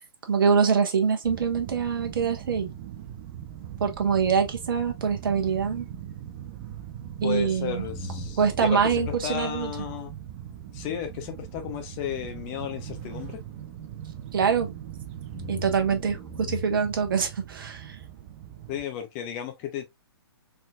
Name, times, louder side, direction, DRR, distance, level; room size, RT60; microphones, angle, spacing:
voice 1, 0.3-2.7 3.8-5.9 7.2-7.8 8.4-9.7 14.3-14.7 15.5-18.0, right 6 dB, 55° right, 1.2 m, -24 dB
sound 1, 1.2-18.9, right 11 dB, 30° right, 0.6 m, -40 dB
sound 2, 3.2-7.4 7.8-14.9 15.3-16.6, left 3 dB, ahead, 1.4 m, -44 dB
voice 2, 7.2-10.1 10.7-13.4 18.7-19.9, left 10 dB, 30° left, 1.0 m, -34 dB
4.2 x 3.7 x 2.3 m
figure-of-eight pair, 125°, 14 cm